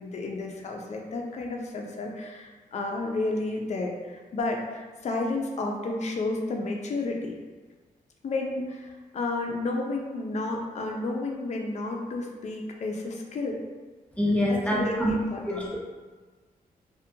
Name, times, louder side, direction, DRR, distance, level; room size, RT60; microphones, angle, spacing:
voice 1, 0.0-7.3 8.2-13.6 14.5-15.7, left 2 dB, 45° left, 1 dB, 0.4 m, -31 dB
voice 2, 14.2-15.1 15.5-15.8, left 1 dB, 10° left, -3 dB, 0.6 m, -25 dB
2.4 x 2.2 x 2.7 m, 1.4 s
cardioid pair, 70°, 16 cm